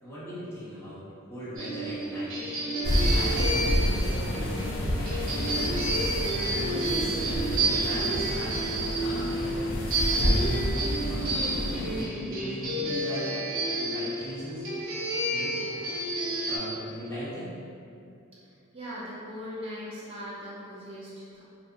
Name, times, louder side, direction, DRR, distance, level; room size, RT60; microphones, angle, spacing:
voice 1, 0.0-1.0 1.3-2.6 3.1-6.1 6.4-9.6 10.0-10.8 11.1-13.3 13.8-14.6 15.3-15.6 16.5-17.6, equal, 10° left, -14 dB, 0.8 m, -38 dB
sound 1, 1.6-16.6, right 2 dB, 70° right, 0.7 m, -30 dB
sound 2, 2.8-12.0, equal, 60° left, 0.3 m, -29 dB
voice 2, 18.7-21.4, equal, 25° right, -8 dB, 0.5 m, -39 dB
2.5 x 2.4 x 2.2 m, 2.5 s
head